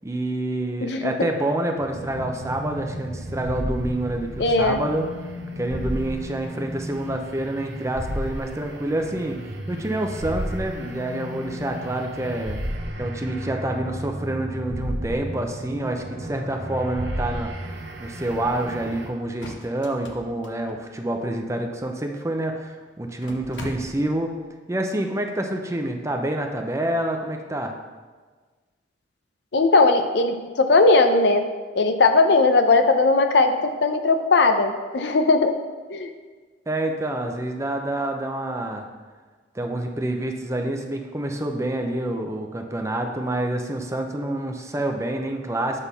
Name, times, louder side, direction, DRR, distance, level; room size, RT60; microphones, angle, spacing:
voice 1, 0.0-5.1 5.6-9.4 9.7-12.6 13.0-17.5 18.0-24.3 24.7-27.7 36.7-38.9 39.5-45.8, right 1 dB, 15° right, 4 dB, 0.6 m, -27 dB
voice 2, 0.8-1.3 4.4-4.8 29.5-31.4 31.8-35.5 35.9-36.1, left 3 dB, 65° left, 7 dB, 0.6 m, -18 dB
sound 1, 1.8-19.1, equal, 85° right, 1.0 m, -33 dB
sound 2, 18.3-18.8 19.2-21.3 22.2-22.3 22.5-22.6 23.1-24.3, left 1 dB, 85° left, 0.9 m, -40 dB
8.1 x 3.6 x 5.5 m, 1.4 s
head